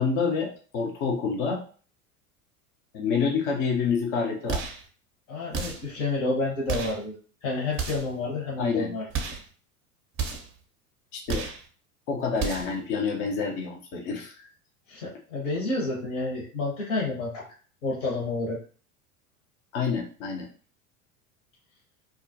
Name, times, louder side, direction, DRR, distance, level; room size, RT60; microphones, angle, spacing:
voice 1, 0.0-1.6 2.9-4.6 8.6-8.9 11.1-11.5 12.1-14.5 19.7-20.5, left 5 dB, 30° left, 1 dB, 0.4 m, -28 dB
sound 1, 4.5-4.9 5.5-5.9 6.7-7.0 7.7-8.2 9.1-9.5 10.1-10.6 11.3-11.6 12.3-12.8, right 6 dB, 30° right, 0.5 m, -32 dB
voice 2, 5.3-7.2 7.4-9.0 14.9-17.4 17.8-18.6, left 2 dB, 60° left, -4 dB, 0.9 m, -29 dB
2.3 x 2.0 x 2.6 m, 0.41 s
hypercardioid pair, 80°, 43 cm